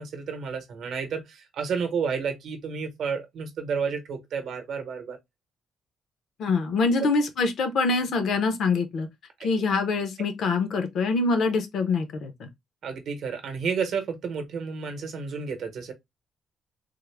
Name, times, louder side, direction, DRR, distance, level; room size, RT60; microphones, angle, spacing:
voice 1, 0.0-5.2 12.8-15.9, right 6 dB, 55° right, 0.8 m, -31 dB
voice 2, 6.4-9.1 9.4-12.5, left 4 dB, 55° left, 0.6 m, -25 dB
3.5 x 2.0 x 3.2 m
cardioid pair, 170°, 0 cm